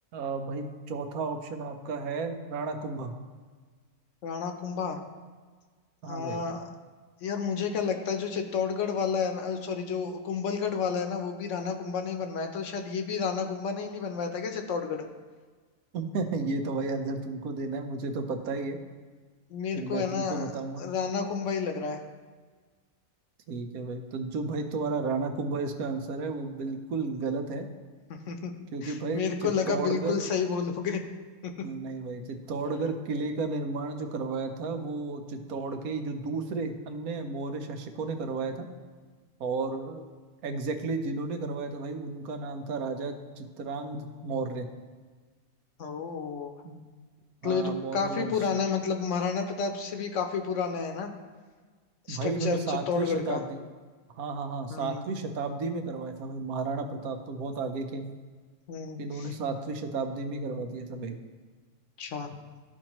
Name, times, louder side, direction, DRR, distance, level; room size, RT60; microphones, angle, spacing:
voice 1, 0.1-3.1 6.0-6.4 15.9-18.8 19.7-20.8 23.5-27.7 28.7-30.2 31.6-38.7 39.4-40.1 40.4-44.7 46.6-46.8 47.4-48.3 52.1-53.6 54.2-58.1 59.0-61.2, right 3 dB, 85° right, 6 dB, 1.2 m, -33 dB
voice 2, 4.2-5.0 6.1-6.6 7.2-15.0 19.5-20.5 20.8-22.0 28.1-28.5 28.8-31.0 45.8-46.5 47.4-51.1 52.1-53.4 54.7-55.0 58.7-59.3 62.0-62.3, left 5 dB, 65° left, 5 dB, 0.9 m, -31 dB
13.0 x 4.4 x 3.0 m, 1.5 s
omnidirectional pair, 1.5 m